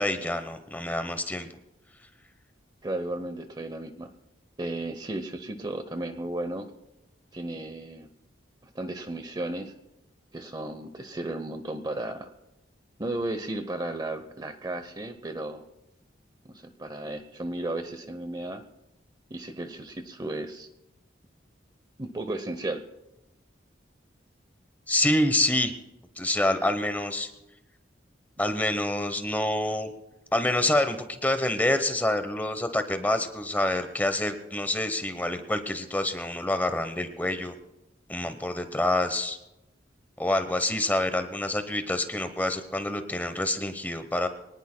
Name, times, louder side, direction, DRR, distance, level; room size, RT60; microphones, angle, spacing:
voice 1, 0.0-1.5 24.9-25.7 26.2-27.3 28.4-29.9 30.3-37.5 38.1-39.4 40.2-44.3, left 1 dB, 10° left, 9 dB, 0.9 m, -27 dB
voice 2, 2.8-4.1 4.6-6.7 7.3-8.1 8.7-9.7 10.3-12.3 13.0-15.6 16.4-18.6 19.3-20.7 22.0-22.8, right 2 dB, 20° right, 10 dB, 0.7 m, -34 dB
24.0 x 18.5 x 2.2 m, 0.95 s
head